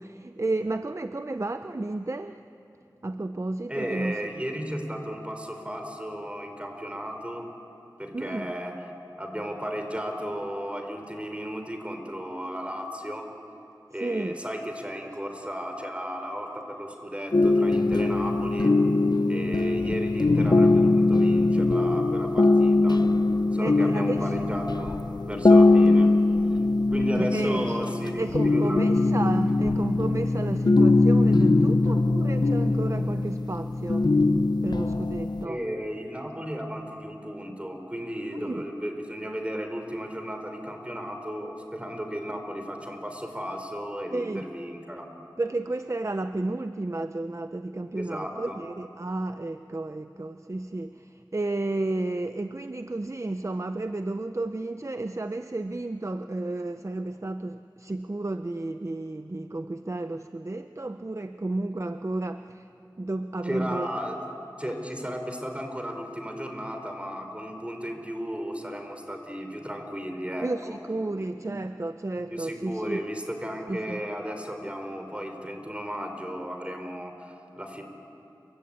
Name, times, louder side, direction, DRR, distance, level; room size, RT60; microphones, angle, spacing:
voice 1, 0.0-2.4 3.0-4.1 8.1-8.5 14.0-14.4 23.6-24.3 27.2-27.8 28.2-34.1 34.6-35.6 38.3-38.6 44.1-44.4 45.4-62.7 63.0-63.9 70.4-73.0 73.7-74.0, right 2 dB, 40° right, 9 dB, 0.7 m, -32 dB
voice 2, 3.7-7.4 8.0-8.8 9.2-13.3 13.9-18.7 19.3-23.1 23.5-25.0 25.3-26.2 26.9-29.7 35.4-45.1 48.0-48.6 63.4-64.2 64.6-70.8 72.3-77.8, equal, 15° right, 5 dB, 4.0 m, -34 dB
sound 1, 17.3-35.4, left 2 dB, 65° left, 0.9 m, -21 dB
29.0 x 23.5 x 8.8 m, 2.9 s
wide cardioid pair, 45°, 8 cm